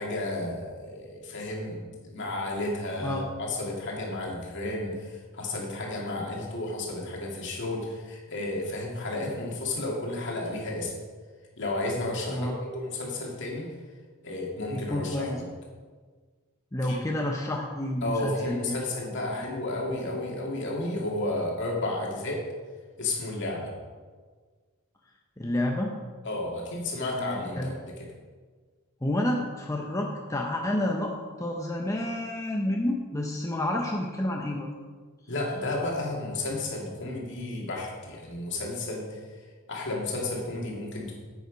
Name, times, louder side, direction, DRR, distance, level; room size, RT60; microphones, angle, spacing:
voice 1, 0.0-10.9 11.6-13.7 14.2-15.4 16.8-17.0 18.0-22.4 23.0-23.7 26.2-27.9 35.3-39.2 39.7-41.1, left 2 dB, 55° left, -1 dB, 2.3 m, -32 dB
voice 2, 3.0-3.3 12.3-12.6 14.7-15.4 16.7-18.8 19.4-19.5 25.4-25.9 27.2-27.7 29.0-34.7, left 1 dB, 15° left, 0 dB, 0.7 m, -29 dB
9.0 x 8.2 x 5.1 m, 1.5 s
head